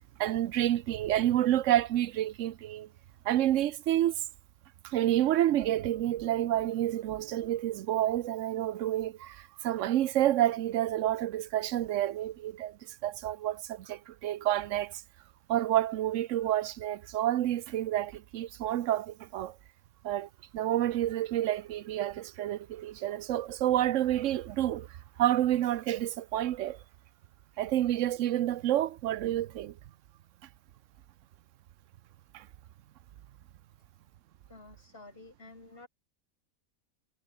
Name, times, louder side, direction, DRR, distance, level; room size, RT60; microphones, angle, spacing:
voice 1, 0.2-2.9 3.3-4.1 4.8-9.4 9.6-12.8 13.0-14.9 15.5-19.5 20.0-24.9 25.2-26.8 27.6-29.7 32.3-32.4, right 13 dB, 70° right, 1.0 m, -29 dB
voice 2, 34.5-35.9, left 2 dB, 40° left, 3.7 m, -51 dB
omnidirectional pair, 1.4 m